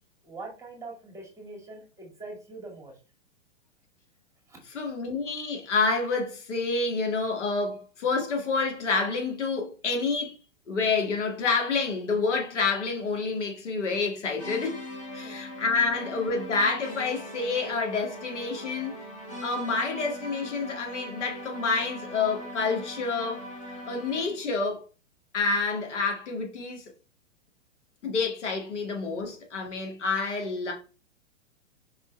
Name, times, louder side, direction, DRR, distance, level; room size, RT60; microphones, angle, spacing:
voice 1, 0.2-3.0 4.5-4.6 15.1-15.4, right 3 dB, 10° right, 2.1 m, -43 dB
voice 2, 4.7-10.4 10.7-14.9 15.1-18.9 19.4-23.5 23.9-24.8 25.3-26.8 28.0-30.7, left 4 dB, 65° left, 2.1 m, -28 dB
sound 1, 14.4-24.5, equal, 20° left, 2.2 m, -41 dB
5.6 x 5.4 x 3.2 m
figure-of-eight pair, 115°, 38 cm